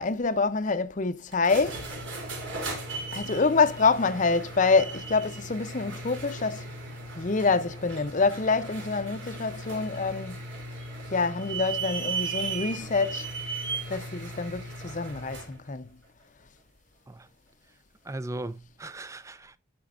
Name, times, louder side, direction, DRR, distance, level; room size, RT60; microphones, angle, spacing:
voice 1, 0.0-1.8 3.1-6.7 7.2-10.4 11.1-13.3 13.9-15.9, left 4 dB, 40° left, 0.6 m, -26 dB
sound 1, 1.3-15.6, right 3 dB, 65° right, 3.1 m, -36 dB
voice 2, 18.1-19.6, right 2 dB, 15° right, 0.4 m, -38 dB
11.0 x 5.2 x 2.5 m
head